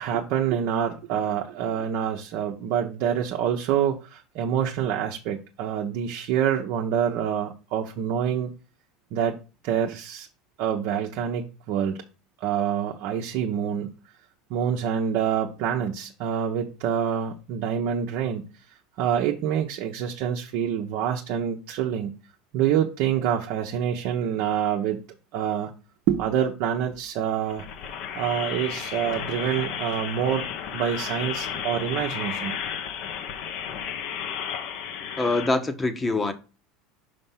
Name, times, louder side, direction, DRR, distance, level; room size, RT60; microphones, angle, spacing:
voice 1, 0.0-8.5 9.1-9.4 9.6-10.3 10.6-12.0 12.4-13.9 14.5-18.5 19.0-22.1 22.5-25.0 25.3-25.7 26.1-27.7 28.1-30.5 30.7-32.6, right 9 dB, 65° right, 0.9 m, -26 dB
sound 1, 27.5-35.5, left 8 dB, 60° left, 1.1 m, -33 dB
voice 2, 35.2-36.3, left 2 dB, 20° left, 1.1 m, -24 dB
5.4 x 5.2 x 5.7 m
hypercardioid pair, 95°, 0 cm